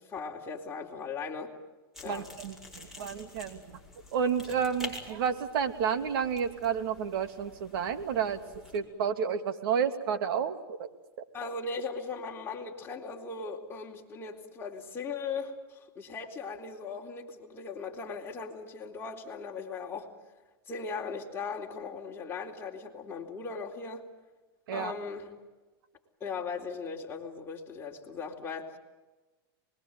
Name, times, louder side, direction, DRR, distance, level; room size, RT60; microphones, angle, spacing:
voice 1, 0.0-1.5 2.0-2.3 11.3-20.1 20.7-24.1 24.7-25.3 26.2-28.8, left 4 dB, 20° left, -1 dB, 4.2 m, -38 dB
sound 1, 1.9-8.8, left 2 dB, 5° right, 7.2 m, -48 dB
voice 2, 2.0-3.8 4.1-8.4 8.7-10.9 24.7-24.9, right 7 dB, 70° right, 7 dB, 2.8 m, -31 dB
25.0 x 21.5 x 9.2 m, 1.2 s
supercardioid pair, 130°, 13 cm